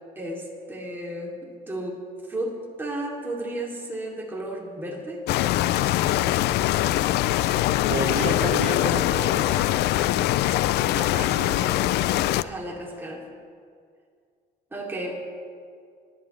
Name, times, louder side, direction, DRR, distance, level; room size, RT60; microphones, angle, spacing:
voice 1, 0.2-2.0 2.3-5.3 12.4-13.3 14.7-15.2, right 1 dB, 10° right, -3 dB, 2.8 m, -33 dB
sound 1, 5.3-12.4, left 14 dB, 75° left, 0.4 m, -23 dB
voice 2, 7.9-9.7 10.9-12.1, right 3 dB, 60° right, -1 dB, 2.2 m, -32 dB
25.0 x 11.0 x 3.3 m, 2.2 s
cardioid pair, 110°, 17 cm